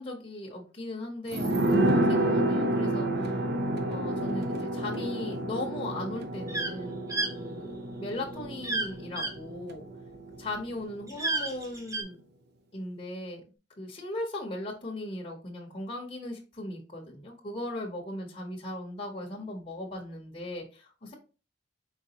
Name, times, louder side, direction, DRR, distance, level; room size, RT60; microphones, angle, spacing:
voice 1, 0.0-3.4 3.9-9.8 10.4-12.2 12.7-13.4 13.8-21.1, left 1 dB, 30° left, -2 dB, 0.8 m, -38 dB
sound 1, 1.3-10.6 10.9-11.0, right 1 dB, 60° right, 0.6 m, -29 dB
sound 2, 6.5-6.7 7.1-7.3 8.6-8.9 9.2-9.3 11.1-12.0, right 2 dB, 15° right, 0.6 m, -30 dB
4.5 x 4.0 x 2.8 m, 0.35 s
head